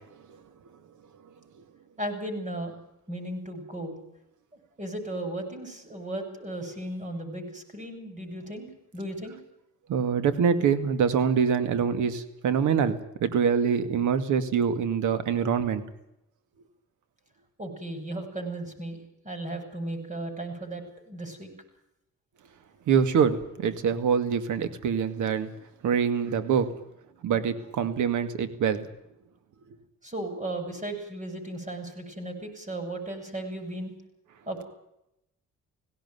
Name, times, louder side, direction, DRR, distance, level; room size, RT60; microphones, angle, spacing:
voice 1, 2.0-2.8 3.1-4.0 4.8-8.7 8.9-9.4 17.6-19.0 19.2-21.5 30.0-33.9 34.5-34.6, right 1 dB, 25° right, 7 dB, 7.6 m, -35 dB
voice 2, 9.9-15.8 22.9-25.5 25.8-26.7 27.2-28.9, right 7 dB, 80° right, 12 dB, 2.3 m, -25 dB
18.0 x 17.5 x 9.7 m, 0.83 s
cardioid pair, 90°, 30 cm